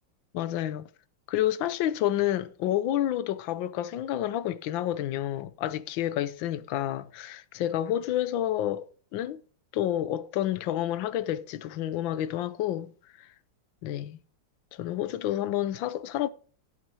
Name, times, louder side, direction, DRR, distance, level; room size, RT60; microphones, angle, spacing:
voice 1, 0.3-0.9 1.3-8.9 9.1-9.4 9.7-12.9 13.2-13.3 13.8-14.2 14.7-16.3, left 12 dB, 85° left, 1.5 m, -29 dB
15.5 x 5.8 x 4.7 m
omnidirectional pair, 2.1 m